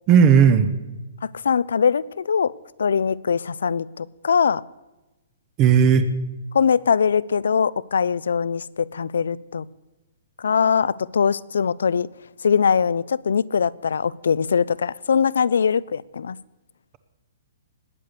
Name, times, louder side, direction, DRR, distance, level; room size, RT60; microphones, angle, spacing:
voice 1, 0.1-0.7 5.6-6.0, right 7 dB, 20° right, 12 dB, 0.7 m, -14 dB
voice 2, 1.2-2.5 2.8-4.6 6.5-9.7 10.4-12.1 12.4-16.4, left 6 dB, 90° left, 21 dB, 0.5 m, -21 dB
19.5 x 8.6 x 6.7 m, 1.1 s
hypercardioid pair, 170°, 0 cm